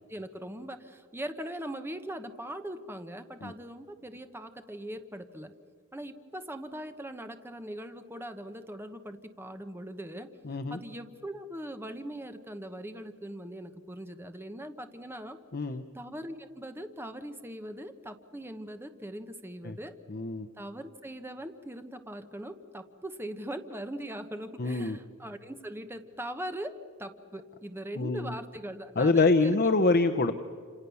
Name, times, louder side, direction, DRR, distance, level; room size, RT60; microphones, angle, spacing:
voice 1, 0.1-5.5 5.9-10.3 10.7-15.4 15.9-19.9 20.6-29.6, right 1 dB, 10° right, 8 dB, 1.0 m, -41 dB
voice 2, 10.4-10.8 15.5-15.8 19.6-19.8 20.1-20.5 24.6-25.0 28.0-28.3 29.0-30.3, left 3 dB, 50° left, 6 dB, 0.8 m, -25 dB
28.5 x 27.0 x 7.0 m, 2.1 s
head